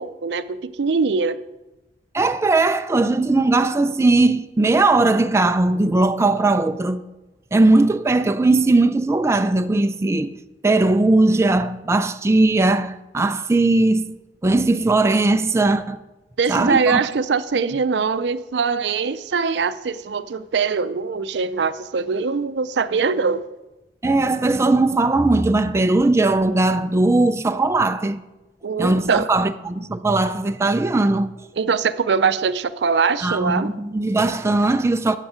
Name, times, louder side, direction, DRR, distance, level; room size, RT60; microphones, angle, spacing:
voice 1, 0.0-1.4 16.4-23.4 28.6-29.3 31.6-33.7, right 5 dB, 75° right, 0.5 m, -22 dB
voice 2, 2.1-7.0 7.5-10.3 10.6-14.2 14.4-16.0 16.5-17.1 24.0-28.2 28.8-31.3 33.2-35.2, right 2 dB, 15° right, 0.4 m, -19 dB
12.5 x 8.2 x 5.0 m
head